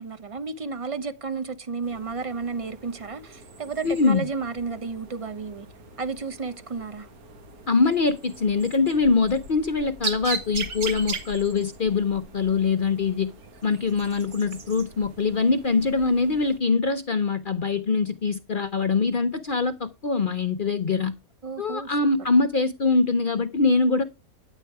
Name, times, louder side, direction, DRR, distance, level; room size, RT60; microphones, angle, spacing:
voice 1, 0.0-5.7 6.0-7.1 21.4-21.9, right 4 dB, 50° right, 0.4 m, -32 dB
sound 1, 1.8-16.6, right 4 dB, 80° right, 1.8 m, -40 dB
voice 2, 3.8-4.2 7.7-13.3 13.6-21.1 21.6-24.0, left 4 dB, 55° left, 0.6 m, -23 dB
10.0 x 8.2 x 4.6 m
omnidirectional pair, 1.6 m